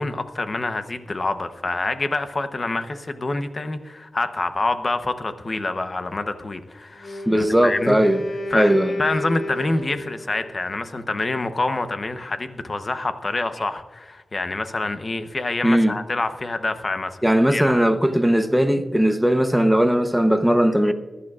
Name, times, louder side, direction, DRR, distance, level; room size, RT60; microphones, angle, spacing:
voice 1, 0.0-8.0 8.5-8.7 9.0-17.2 17.5-17.8, left 2 dB, 40° left, 0.8 m, -26 dB
Wind instrument woodwind instrument, 6.9-10.4, left 1 dB, 70° left, 2.9 m, -32 dB
voice 2, 7.3-8.2 8.5-9.0 15.6-15.9 17.2-20.9, equal, 5° right, 0.8 m, -18 dB
21.5 x 11.5 x 2.4 m
wide cardioid pair, 120°, 0 cm